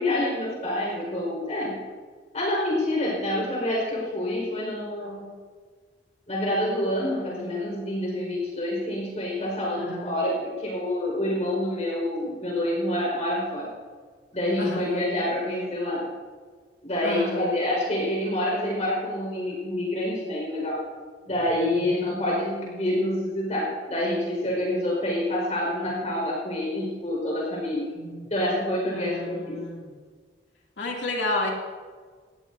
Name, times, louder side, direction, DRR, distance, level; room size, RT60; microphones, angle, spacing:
voice 1, 0.0-1.8 2.3-5.3 6.3-13.7 14.3-16.1 16.8-20.8 21.3-27.9 28.3-29.6, left 1 dB, 40° left, -3 dB, 4.9 m, -27 dB
voice 2, 9.7-10.1 14.6-15.0 17.0-17.4 21.9-22.0 27.9-28.2 28.9-29.9 30.8-31.5, left 2 dB, 80° left, -2 dB, 2.7 m, -31 dB
19.5 x 15.0 x 2.7 m, 1.5 s
head